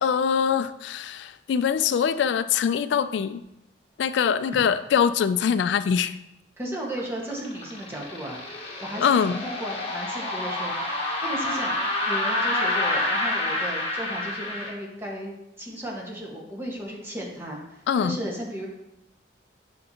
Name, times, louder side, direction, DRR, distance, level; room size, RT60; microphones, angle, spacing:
voice 1, 0.0-3.4 4.0-6.2 9.0-9.4 17.9-18.2, left 7 dB, 80° left, 13 dB, 0.3 m, -23 dB
voice 2, 6.6-8.4 8.8-11.8 12.0-18.7, right 1 dB, 15° right, -3 dB, 1.5 m, -35 dB
sound 1, 7.0-14.7, left 2 dB, 35° left, 1.4 m, -28 dB
7.7 x 6.6 x 2.9 m, 0.86 s
head